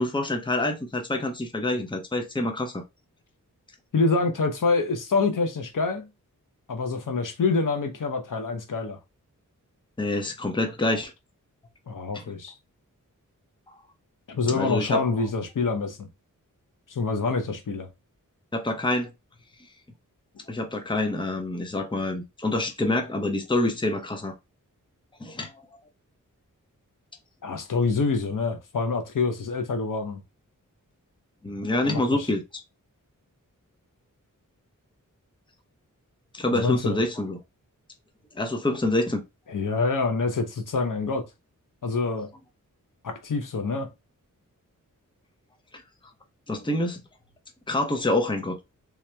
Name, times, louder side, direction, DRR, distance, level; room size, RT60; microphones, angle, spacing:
voice 1, 0.0-2.8 10.0-11.1 12.1-12.2 14.5-15.0 18.5-19.1 20.5-24.3 25.2-25.7 31.4-32.4 36.3-37.4 38.3-39.2 46.5-47.0 47.7-48.6, left 2 dB, 15° left, 0.7 m, -26 dB
voice 2, 3.9-6.1 6.7-9.0 11.9-12.5 14.3-16.1 16.9-17.9 27.4-30.2 31.8-32.3 36.5-37.0 39.5-41.2 41.8-42.3 43.0-43.9, left 4 dB, 70° left, 0.8 m, -26 dB
3.5 x 3.0 x 3.3 m
wide cardioid pair, 115°, 33 cm